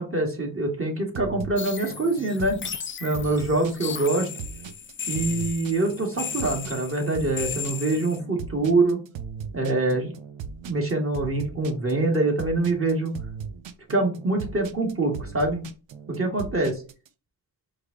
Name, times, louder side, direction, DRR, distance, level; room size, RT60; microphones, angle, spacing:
voice 1, 0.0-2.6 3.0-4.3 5.1-9.0 9.5-10.1 10.6-13.2 13.9-15.6 16.1-16.8, right 2 dB, 30° right, 1 dB, 1.9 m, -25 dB
sound 1, 1.1-17.1, right 6 dB, 75° right, 0.7 m, -38 dB
sound 2, 1.6-8.2, left 6 dB, 25° left, 0.5 m, -36 dB
4.7 x 2.5 x 4.0 m, 0.35 s
supercardioid pair, 50°, 45 cm